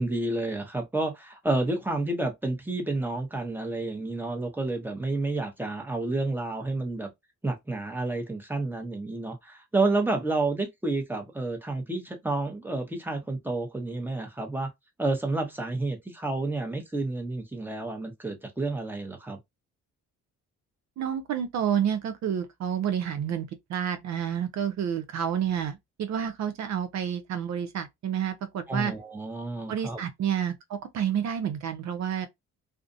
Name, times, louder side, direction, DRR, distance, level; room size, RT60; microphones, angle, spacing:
voice 1, 0.0-7.1 7.4-14.7 15.0-19.4 28.7-30.0, right 2 dB, 5° right, 0.8 m, -30 dB
voice 2, 21.0-28.9 29.7-32.3, right 8 dB, 65° right, 0.6 m, -29 dB
2.4 x 2.1 x 2.6 m
cardioid pair, 90°, 30 cm